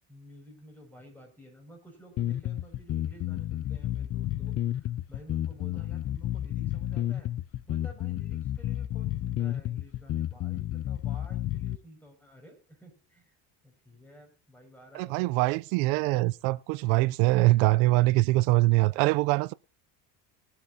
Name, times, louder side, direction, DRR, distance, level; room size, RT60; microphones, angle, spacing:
voice 1, 0.1-7.3 7.7-13.4 13.6-15.5, equal, 5° left, 5.9 m, -52 dB
sound 1, 2.2-11.8, left 13 dB, 40° left, 0.5 m, -31 dB
voice 2, 14.9-19.5, right 20 dB, 85° right, 0.6 m, -23 dB
22.0 x 8.2 x 2.7 m
cardioid pair, 115°, 39 cm